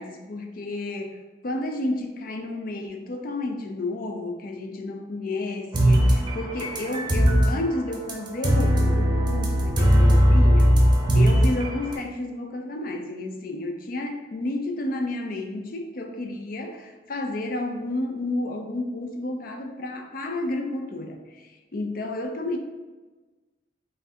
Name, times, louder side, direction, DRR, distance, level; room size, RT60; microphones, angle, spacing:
voice 1, 0.0-10.8 11.1-22.6, left 2 dB, 50° left, 4 dB, 0.5 m, -31 dB
sound 1, 5.7-7.6 7.9-12.0, equal, 25° right, 0.7 m, -19 dB
4.5 x 3.2 x 2.8 m, 1.3 s
head